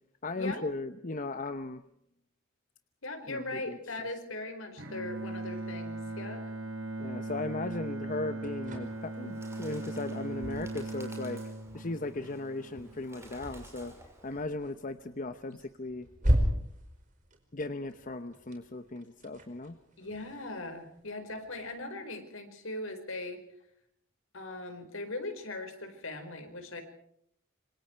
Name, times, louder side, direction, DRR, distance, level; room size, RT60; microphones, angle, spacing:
voice 1, 0.2-1.8 3.3-4.1 7.0-11.4 11.7-13.9 14.2-16.1 17.5-19.8, left 2 dB, 40° left, 10 dB, 0.9 m, -37 dB
voice 2, 3.0-6.4 20.0-23.4 24.3-26.8, left 2 dB, 75° left, 7 dB, 4.8 m, -39 dB
Bowed string instrument, 4.8-13.0, right 2 dB, 75° right, 6.7 m, -39 dB
sound 1, 8.4-22.0, equal, 40° right, 4.8 m, -38 dB
Bird, 8.8-14.4, right 2 dB, 15° right, 6.0 m, -55 dB
27.0 x 25.0 x 4.6 m, 0.72 s
head